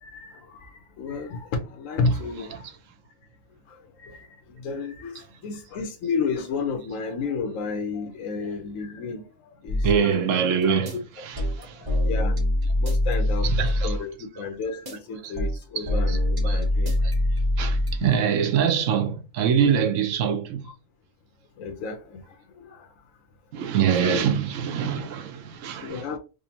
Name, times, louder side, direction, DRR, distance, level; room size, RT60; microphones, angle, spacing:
voice 1, 0.0-2.6 3.7-9.3 9.6-10.4 11.2-11.3 11.6-12.4 12.8-17.4 18.0-18.1 20.6-20.7 21.6-22.9 24.0-24.3 25.8-26.2, left 4 dB, 80° left, 1.1 m, -32 dB
voice 2, 2.1-2.5 9.8-11.8 13.4-14.1 15.2-15.3 15.8-16.2 16.4-16.6 17.6-20.6 23.5-26.1, right 8 dB, 75° right, 0.9 m, -25 dB
sound 1, 9.7-10.0 10.6-11.0 11.4-14.1 14.6-15.0 15.4-18.1, left 1 dB, 25° right, 0.6 m, -23 dB
5.0 x 2.1 x 2.8 m
omnidirectional pair, 1.3 m